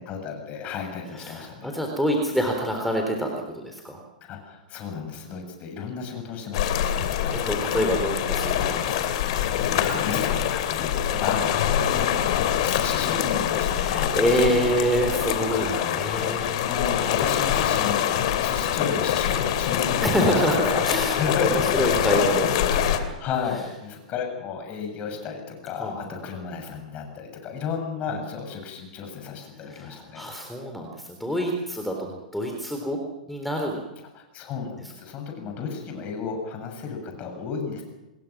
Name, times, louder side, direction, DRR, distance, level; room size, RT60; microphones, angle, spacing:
voice 1, 0.0-1.7 4.3-7.4 9.4-14.7 15.5-16.1 16.4-20.5 21.1-21.9 22.7-30.3 32.0-32.1 34.1-37.8, left 6 dB, 35° left, 4 dB, 7.5 m, -33 dB
voice 2, 1.1-4.0 7.3-9.2 11.1-11.5 12.2-12.4 13.8-16.5 20.0-23.0 25.8-26.2 28.1-28.2 29.7-33.0 33.3-33.8, equal, ahead, 2 dB, 3.7 m, -27 dB
sound 1, 6.5-23.0, left 10 dB, 50° left, 2.7 m, -24 dB
27.5 x 21.0 x 6.2 m, 0.98 s
figure-of-eight pair, 105°, 4 cm